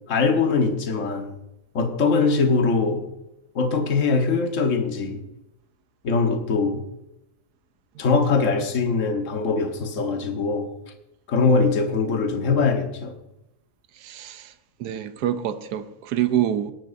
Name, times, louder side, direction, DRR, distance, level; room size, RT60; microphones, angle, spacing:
voice 1, 0.1-1.3 1.7-3.0 3.5-5.2 6.0-6.8 8.0-10.7 11.3-13.1, left 4 dB, 50° left, 1.7 m, -22 dB
voice 2, 14.0-14.5 14.8-16.7, right 11 dB, 75° right, 1.3 m, -26 dB
19.0 x 11.0 x 2.7 m
omnidirectional pair, 1.7 m